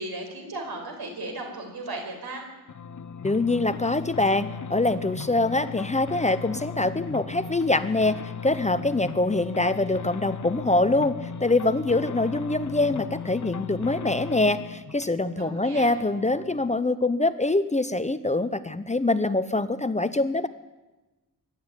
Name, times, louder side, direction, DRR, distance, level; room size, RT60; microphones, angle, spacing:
voice 1, 0.0-2.4 15.4-15.9, right 2 dB, 80° right, 3 dB, 5.2 m, -36 dB
sound 1, 2.7-16.8, left 6 dB, 55° left, 0.9 m, -37 dB
voice 2, 3.2-20.5, left 2 dB, 20° left, 12 dB, 0.7 m, -24 dB
23.5 x 11.5 x 9.8 m, 1.1 s
wide cardioid pair, 135°, 37 cm